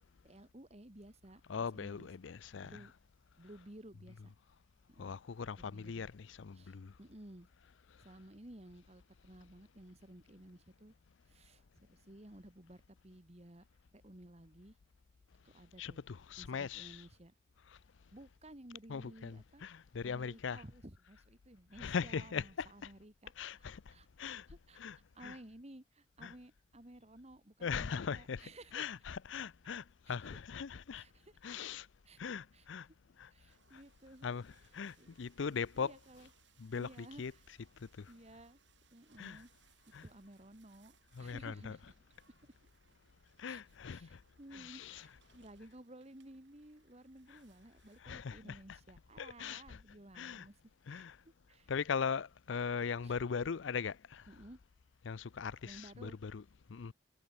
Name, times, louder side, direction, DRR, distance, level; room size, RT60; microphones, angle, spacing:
voice 1, 0.2-2.1 2.5-2.9 3.4-4.3 4.9-5.1 5.6-6.1 6.5-7.5 8.0-10.9 11.3-14.8 15.4-16.0 16.4-17.3 18.1-19.7 20.0-24.8 25.1-28.9 30.1-30.2 30.9-31.3 32.0-32.7 33.3-34.3 35.0-35.2 35.7-36.3 36.7-37.4 38.1-38.6 38.9-39.5 40.0-42.0 43.4-50.6 50.9-51.7 53.0-53.1 54.3-54.6 55.7-56.2, right 1 dB, 35° right, 2.0 m, -55 dB
voice 2, 1.5-2.8 5.0-6.9 15.8-17.0 17.7-17.8 18.9-20.6 21.8-22.9 23.4-23.9 24.2-24.5 24.8-25.4 26.2-26.3 27.6-31.0 31.4-31.9 32.2-32.9 33.2-33.3 33.7-33.8 34.2-35.9 36.6-37.3 37.8-38.1 39.2-39.4 39.9-40.0 41.1-41.8 43.4-44.2 44.5-45.1 47.3-47.4 48.0-48.8 49.2-49.8 50.1-50.5 50.9-51.2 51.7-54.3 55.0-56.4 56.7-56.9, left 6 dB, 70° left, 0.5 m, -40 dB
sound 1, 33.5-48.0, right 6 dB, 65° right, 4.5 m, -71 dB
head